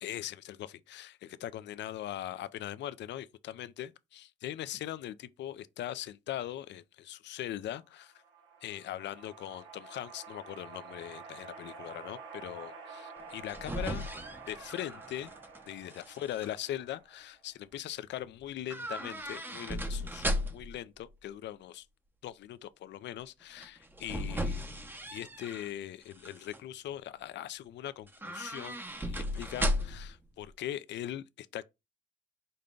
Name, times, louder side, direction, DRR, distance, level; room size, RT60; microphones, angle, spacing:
voice 1, 0.0-8.1 8.6-14.1 14.5-15.3 15.7-21.9 22.2-24.6 25.1-31.6, left 12 dB, 65° left, 0.4 m, -41 dB
sound 1, 8.0-17.5, right 4 dB, 70° right, 1.2 m, -49 dB
sound 2, 13.2-15.6 15.9-16.5 18.7-20.8 23.6-25.7 26.1-26.6 28.1-30.2 30.4-30.5, equal, 10° right, 0.6 m, -36 dB
5.2 x 2.2 x 3.7 m
cardioid pair, 90°, 20 cm